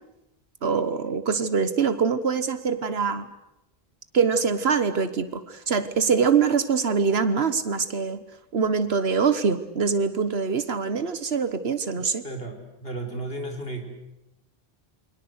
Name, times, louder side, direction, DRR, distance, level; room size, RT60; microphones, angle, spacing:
voice 1, 0.6-3.3 4.1-8.2 8.5-12.2, right 5 dB, 80° right, 12 dB, 1.5 m, -24 dB
voice 2, 12.2-13.9, right 2 dB, 70° left, 4 dB, 4.6 m, -34 dB
29.0 x 22.5 x 8.1 m, 0.89 s
omnidirectional pair, 1.0 m